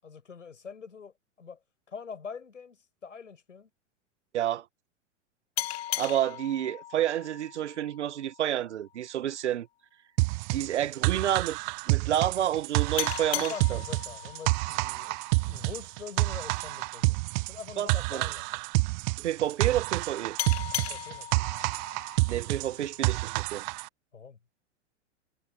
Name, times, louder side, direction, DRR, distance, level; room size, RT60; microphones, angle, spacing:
voice 1, 0.0-1.6 1.9-3.7 13.4-15.2 15.5-18.5 20.8-21.5 24.1-24.4, left 6 dB, 80° left, 7.7 m, -44 dB
voice 2, 4.3-4.6 6.0-9.7 10.5-11.6 11.9-13.8 17.8-18.2 19.2-20.4 22.3-23.6, right 11 dB, 65° right, 1.4 m, -29 dB
sound 1, 5.6-8.8 13.0-16.2 20.4-23.3, left 16 dB, 55° left, 2.6 m, -38 dB
sound 2, 10.2-23.9, right 29 dB, 40° right, 0.7 m, -29 dB
figure-of-eight pair, 100°, 37 cm